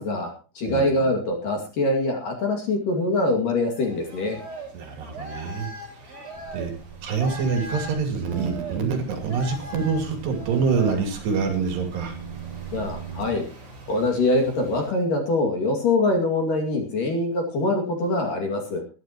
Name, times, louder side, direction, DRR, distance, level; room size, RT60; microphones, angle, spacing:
voice 1, 0.0-4.4 12.7-13.4 13.9-18.8, left 2 dB, 50° left, 2 dB, 3.3 m, -24 dB
sound 1, 3.7-14.9, right 1 dB, 30° right, 5.0 m, -40 dB
voice 2, 4.7-5.7 6.5-6.7 7.0-12.2, right 5 dB, 60° right, 5 dB, 4.5 m, -26 dB
sound 2, 6.3-13.3, right 9 dB, 80° right, 1.6 m, -40 dB
22.0 x 12.0 x 2.9 m, 0.34 s
omnidirectional pair, 5.7 m